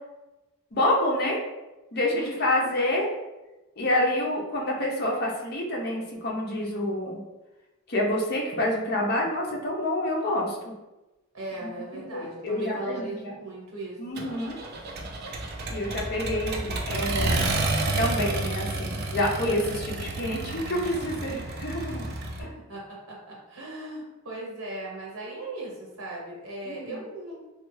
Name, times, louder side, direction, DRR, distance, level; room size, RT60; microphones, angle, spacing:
voice 1, 0.7-1.4 1.9-3.1 3.8-7.2 7.9-10.7 11.9-13.3 14.0-14.6 15.7-17.5 18.0-22.0 22.4-22.5 26.7-27.0, left 1 dB, 45° left, -2 dB, 0.6 m, -28 dB
voice 2, 2.1-2.7 11.3-14.3 15.8-16.0 22.4-27.3, right 2 dB, 75° right, -3 dB, 1.1 m, -38 dB
Accelerating revving vroom, 14.2-22.4, right 2 dB, 45° right, 0.4 m, -30 dB
3.2 x 2.2 x 3.1 m, 1.1 s
head